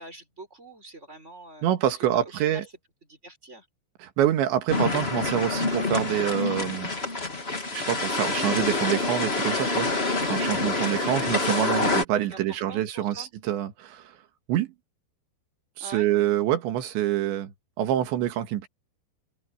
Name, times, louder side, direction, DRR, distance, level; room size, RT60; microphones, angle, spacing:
voice 1, 0.0-1.7 2.0-2.7 3.1-3.7 12.3-13.3 15.8-16.1, right 2 dB, 15° right, 5.4 m, -44 dB
voice 2, 1.6-2.6 4.0-6.9 7.7-9.9 10.3-14.1 14.5-14.7 15.8-17.5 17.8-18.7, right 12 dB, 90° right, 4.1 m, -26 dB
sound 1, 4.7-12.0, left 3 dB, 25° left, 1.4 m, -27 dB
omnidirectional pair, 5.0 m